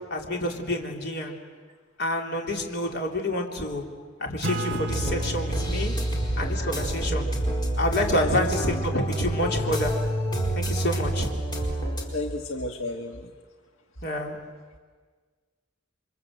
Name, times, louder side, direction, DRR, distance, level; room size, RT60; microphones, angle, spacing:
voice 1, 0.1-1.4 2.0-3.8 4.2-5.9 6.4-7.3 7.8-8.9 9.2-9.9 10.5-11.3 14.0-14.4, left 1 dB, 60° left, 1 dB, 3.7 m, -28 dB
Acoustic guitar / Strum, 4.4-9.4, right 1 dB, 60° right, 2.0 m, -36 dB
sound 1, 4.9-12.0, right 1 dB, 20° left, 4.7 m, -28 dB
voice 2, 6.3-7.0 8.2-9.1 12.1-13.3, left 1 dB, 80° left, 2 dB, 1.6 m, -33 dB
30.0 x 24.5 x 7.9 m, 1.5 s
head